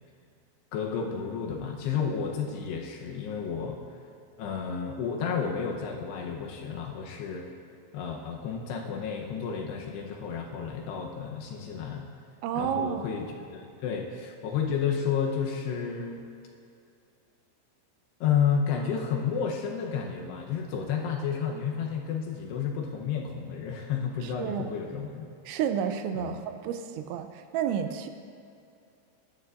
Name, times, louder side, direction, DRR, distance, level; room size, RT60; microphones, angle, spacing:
voice 1, 0.7-3.8 4.4-7.5 7.9-12.1 12.6-16.2 18.2-25.3 26.1-26.4, left 7 dB, 75° left, 0 dB, 2.7 m, -31 dB
voice 2, 12.4-13.1 24.2-24.7 25.5-28.1, right 8 dB, 85° right, 8 dB, 2.9 m, -31 dB
19.0 x 12.0 x 2.5 m, 2.5 s
omnidirectional pair, 5.4 m